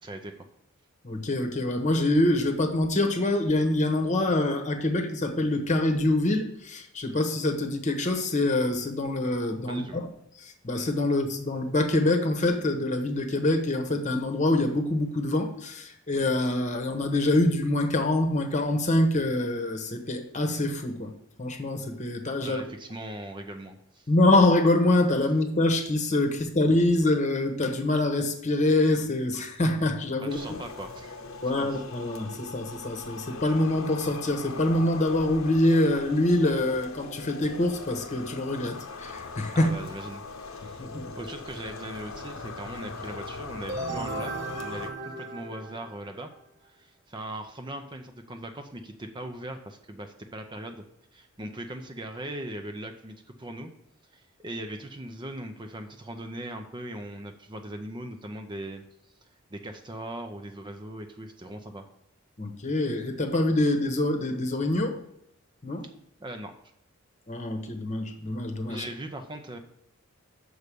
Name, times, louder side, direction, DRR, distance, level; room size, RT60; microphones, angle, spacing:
voice 1, 0.0-0.4 9.7-10.0 22.4-24.1 30.2-31.2 31.6-31.8 39.5-40.2 40.5-40.9 41.2-44.3 44.6-46.3 46.6-50.8 51.1-53.7 54.1-58.8 59.5-61.8 65.8-65.9 66.2-66.5 68.7-69.6, right 1 dB, 25° right, 6 dB, 0.6 m, -39 dB
voice 2, 1.0-10.1 10.4-21.1 21.4-22.6 24.1-30.6 31.4-39.7 40.8-41.1 62.4-65.0 65.6-65.8 67.3-68.8, left 2 dB, 35° left, 6 dB, 1.0 m, -25 dB
sound 1, 30.3-44.9, left 4 dB, 80° left, 0.9 m, -40 dB
sound 2, 43.7-46.4, right 2 dB, 55° right, 1.0 m, -36 dB
6.6 x 4.8 x 6.7 m, 0.77 s
head